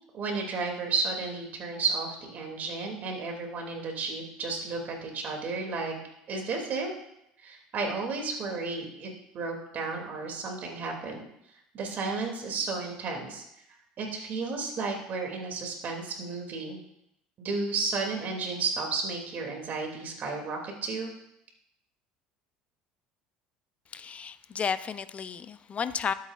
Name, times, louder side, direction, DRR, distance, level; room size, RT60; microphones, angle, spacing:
voice 1, 0.1-6.0 6.3-6.9 7.4-11.2 11.7-13.4 14.0-16.8 17.4-21.1, right 4 dB, 50° right, 1 dB, 2.7 m, -33 dB
voice 2, 23.9-26.1, left 6 dB, 35° left, 13 dB, 0.5 m, -32 dB
12.0 x 8.1 x 2.5 m, 0.80 s
hypercardioid pair, 80°, 4 cm